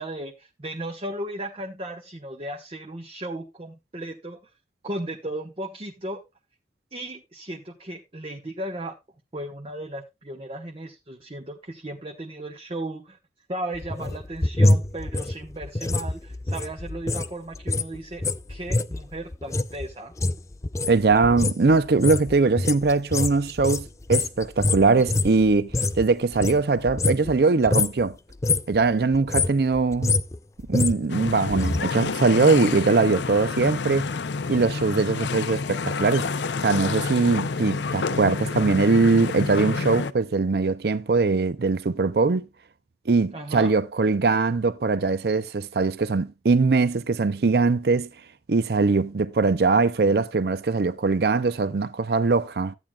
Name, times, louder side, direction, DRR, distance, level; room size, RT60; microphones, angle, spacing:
voice 1, 0.0-4.4 4.8-6.2 6.9-8.9 9.3-13.2 13.5-18.2 18.5-20.1 32.6-32.7 43.3-43.7, right 1 dB, 35° right, 1.0 m, -35 dB
sound 1, 13.7-17.3 17.5-26.0 26.3-27.4 27.6-28.0 28.3-28.8 29.1-31.8 32.1-32.2, left 2 dB, 15° left, 0.4 m, -25 dB
voice 2, 20.9-25.7 26.0-28.2 28.7-30.1 30.7-34.1 34.5-36.4 36.6-42.5 43.1-48.1 48.5-52.8, right 4 dB, 60° right, 0.5 m, -21 dB
sound 2, 31.1-40.1, left 4 dB, 85° left, 0.6 m, -29 dB
13.5 x 8.8 x 2.3 m
head